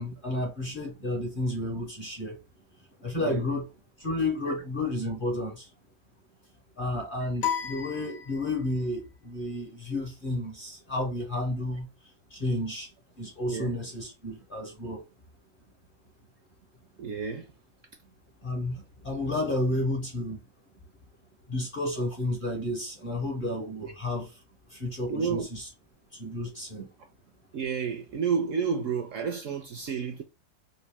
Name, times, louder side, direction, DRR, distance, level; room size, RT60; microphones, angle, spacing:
voice 1, 0.0-2.4 3.0-3.7 4.0-5.7 6.8-11.9 12.3-12.9 13.2-15.0 18.4-20.4 21.5-24.3 24.7-25.7 26.1-26.9, left 1 dB, 45° left, 0.8 m, -31 dB
sound 1, 7.4-8.9, left 9 dB, 65° left, 1.0 m, -33 dB
voice 2, 17.0-17.5 23.8-23.9 25.1-25.5 27.5-30.2, right 6 dB, 70° right, 0.8 m, -30 dB
3.3 x 2.6 x 3.4 m
omnidirectional pair, 1.7 m